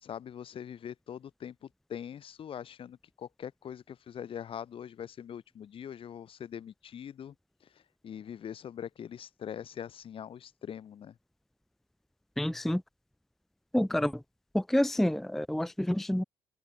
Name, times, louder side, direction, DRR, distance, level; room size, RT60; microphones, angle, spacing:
voice 1, 0.0-7.4 7.6-11.2, left 9 dB, 60° left, 2.0 m, -43 dB
voice 2, 12.4-12.8 13.7-14.2 14.5-16.2, left 1 dB, 5° left, 0.5 m, -28 dB
open air
cardioid pair, 90°, 10 cm